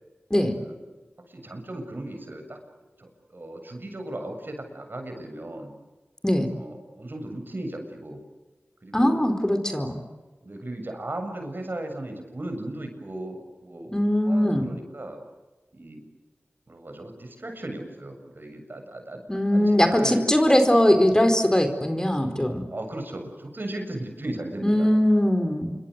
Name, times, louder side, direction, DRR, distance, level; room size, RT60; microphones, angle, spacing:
voice 1, 1.3-2.6 3.0-5.7 6.5-8.2 8.8-9.2 10.4-15.2 15.7-16.0 16.7-19.2 19.5-20.3 22.7-24.9, right 1 dB, 55° right, 5 dB, 7.5 m, -36 dB
voice 2, 8.9-10.0 13.9-14.7 19.3-22.6 24.6-25.7, left 1 dB, 15° left, 7 dB, 4.5 m, -21 dB
28.0 x 25.0 x 8.2 m, 1.2 s
wide cardioid pair, 50°, 4 cm